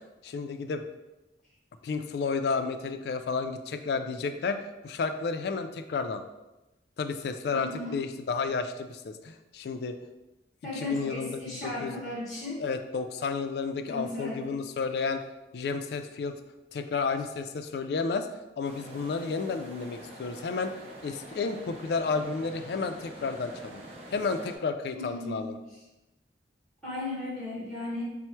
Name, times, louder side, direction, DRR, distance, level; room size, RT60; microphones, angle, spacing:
voice 1, 0.2-0.8 1.8-6.2 7.0-9.9 10.7-12.0 12.6-15.2 15.5-16.4 16.7-18.3 18.6-20.7 21.0-23.8 24.1-25.6, left 4 dB, 65° left, 8 dB, 0.3 m, -31 dB
voice 2, 7.5-8.0 10.6-12.6 13.9-14.4 24.9-25.4 26.8-28.0, left 2 dB, ahead, -6 dB, 0.9 m, -35 dB
sound 1, 18.6-24.6, right 1 dB, 35° right, 0.7 m, -46 dB
4.3 x 2.0 x 4.4 m, 1.0 s
head